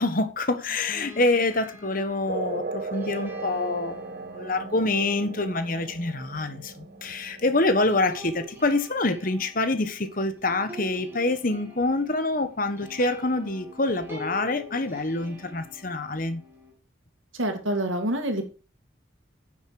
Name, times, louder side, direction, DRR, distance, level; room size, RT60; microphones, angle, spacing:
voice 1, 0.0-16.4, left 2 dB, 45° left, 1.3 m, -26 dB
sound 1, 0.7-16.7, left 1 dB, 10° right, 3.2 m, -46 dB
sound 2, 2.3-9.3, right 3 dB, 50° right, 0.6 m, -38 dB
voice 2, 17.3-18.5, right 1 dB, 80° right, 2.3 m, -27 dB
10.5 x 7.3 x 4.8 m
head